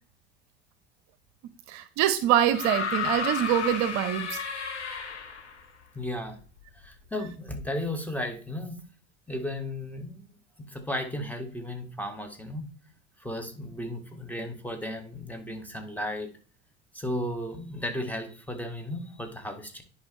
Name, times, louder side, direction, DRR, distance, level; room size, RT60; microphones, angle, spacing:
voice 1, 1.7-4.4, right 11 dB, 50° right, 12 dB, 0.7 m, -25 dB
sound 1, 2.5-5.6 6.8-6.9, left 6 dB, 90° left, 1.2 m, -32 dB
voice 2, 5.9-6.4 6.8-8.8 9.3-10.2 10.7-12.7 13.2-16.3 16.9-19.8, left 1 dB, 5° left, 4 dB, 2.0 m, -34 dB
10.5 x 5.0 x 3.2 m, 0.39 s
figure-of-eight pair, 70°, 33 cm